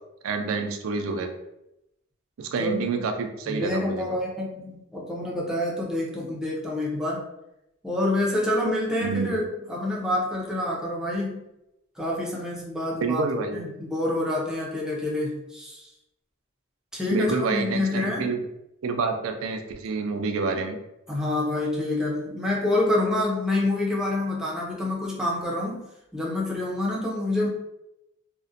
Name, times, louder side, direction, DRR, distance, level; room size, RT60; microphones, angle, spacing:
voice 1, 0.2-1.3 2.4-4.2 9.0-9.3 13.0-13.6 17.1-18.4 18.8-20.8, right 4 dB, 85° right, 5 dB, 0.4 m, -28 dB
voice 2, 2.6-3.0 3.5-7.3 7.8-9.4 9.7-11.4 12.0-13.3 13.5-15.9 16.9-18.4 21.1-25.9 26.1-27.5, left 1 dB, 5° right, -5 dB, 0.5 m, -27 dB
2.5 x 2.1 x 2.4 m, 0.87 s
head